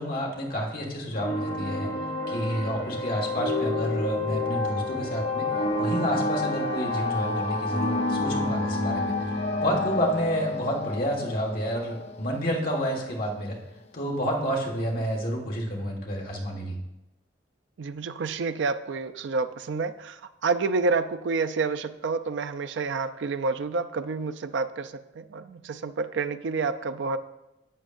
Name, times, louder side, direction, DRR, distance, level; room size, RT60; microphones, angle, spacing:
voice 1, 0.0-1.9 2.3-5.5 5.8-9.3 9.6-13.6 13.9-16.7, equal, 50° left, -1 dB, 1.5 m, -29 dB
sound 1, 1.1-12.4, left 2 dB, 80° left, 2.4 m, -30 dB
sound 2, 5.1-13.1, left 3 dB, 35° left, 0.5 m, -37 dB
voice 2, 17.8-27.2, right 4 dB, 75° right, 11 dB, 0.4 m, -29 dB
11.0 x 8.1 x 2.5 m, 0.94 s
head